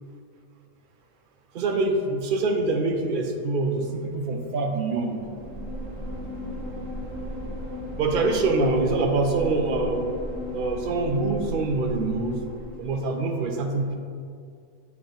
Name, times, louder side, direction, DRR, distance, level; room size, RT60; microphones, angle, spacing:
voice 1, 1.5-5.2 8.0-10.1 10.5-12.4 12.8-13.9, right 3 dB, 50° right, 3 dB, 0.7 m, -25 dB
sound 1, 5.2-13.0, left 1 dB, 85° right, 1.6 m, -35 dB
8.4 x 3.0 x 3.9 m, 2.3 s
omnidirectional pair, 1.3 m